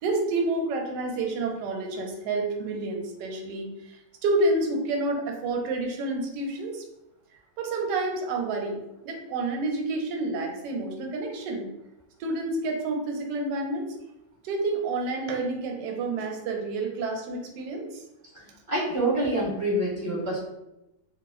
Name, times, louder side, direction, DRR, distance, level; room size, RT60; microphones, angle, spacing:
voice 1, 0.0-6.8 7.6-8.8 9.0-11.6 12.2-13.9 14.4-18.0, right 2 dB, 75° right, 2 dB, 1.1 m, -29 dB
voice 2, 18.3-20.5, right 1 dB, 25° right, -8 dB, 0.8 m, -27 dB
3.0 x 2.0 x 2.3 m, 0.91 s
omnidirectional pair, 1.9 m